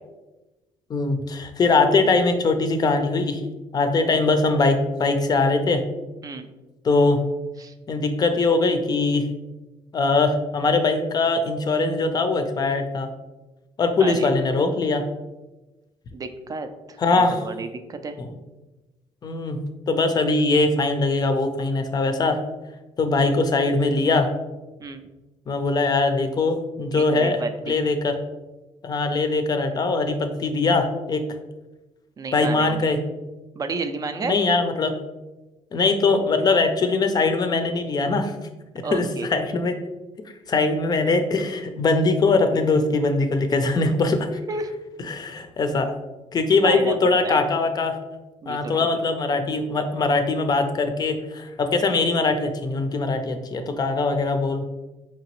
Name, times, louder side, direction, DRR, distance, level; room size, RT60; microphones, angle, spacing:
voice 1, 0.9-3.4 3.7-5.8 6.8-7.2 7.9-9.3 9.9-13.1 13.8-15.1 17.0-17.4 19.2-19.6 19.9-22.4 23.0-24.3 25.5-27.4 27.6-28.1 28.8-31.2 32.3-33.0 34.2-35.0 35.7-38.3 38.7-39.8 40.5-44.3 45.1-45.9 46.3-48.0 48.5-54.6, left 3 dB, 35° left, 7 dB, 0.5 m, -21 dB
voice 2, 16.1-18.2 24.8-25.0 26.9-27.8 32.2-32.9 33.5-34.4 38.8-39.3 44.5-44.7 46.6-47.4 48.4-48.9, right 4 dB, 30° right, 8 dB, 0.4 m, -31 dB
4.8 x 2.9 x 3.0 m, 1.1 s
cardioid pair, 105°, 11 cm